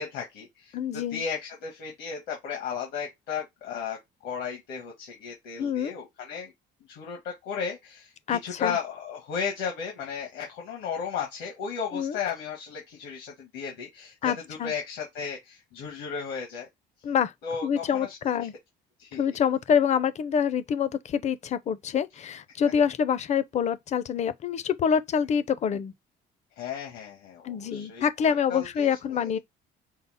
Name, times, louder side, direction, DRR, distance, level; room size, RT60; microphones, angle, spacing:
voice 1, 0.0-6.5 6.9-16.7 17.4-18.2 19.0-19.2 26.6-29.3, left 6 dB, 90° left, 1.5 m, -35 dB
voice 2, 0.7-1.2 5.6-5.9 8.3-8.8 11.9-12.2 14.2-14.7 17.0-17.3 17.6-18.5 19.1-25.9 27.4-29.4, left 7 dB, 45° left, 0.5 m, -26 dB
5.5 x 2.0 x 4.0 m
cardioid pair, 110°, 17 cm